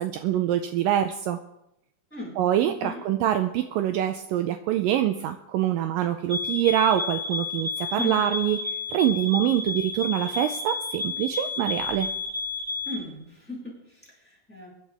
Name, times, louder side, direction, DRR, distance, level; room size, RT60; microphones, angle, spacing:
voice 1, 0.0-1.4 2.4-8.6 8.9-12.1, right 11 dB, 80° right, 8 dB, 2.1 m, -25 dB
voice 2, 2.1-3.0 7.9-8.2 12.8-14.7, left 1 dB, 5° left, -2 dB, 4.2 m, -37 dB
sound 1, 6.3-13.0, left 3 dB, 35° right, 2.4 m, -31 dB
23.0 x 10.5 x 3.4 m, 0.83 s
omnidirectional pair, 4.3 m